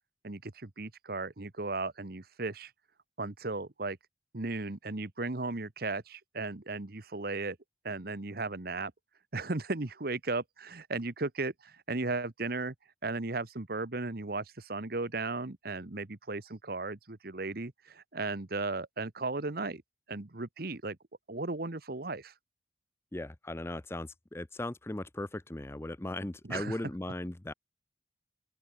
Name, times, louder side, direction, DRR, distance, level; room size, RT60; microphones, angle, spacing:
voice 1, 0.2-2.7 3.2-4.0 4.3-7.6 7.8-8.9 9.3-12.7 13.0-19.8 20.1-21.0 21.3-22.3 26.5-26.7, right 3 dB, 55° right, 1.3 m, -36 dB
voice 2, 23.1-27.5, left 1 dB, 15° left, 0.5 m, -38 dB
open air
head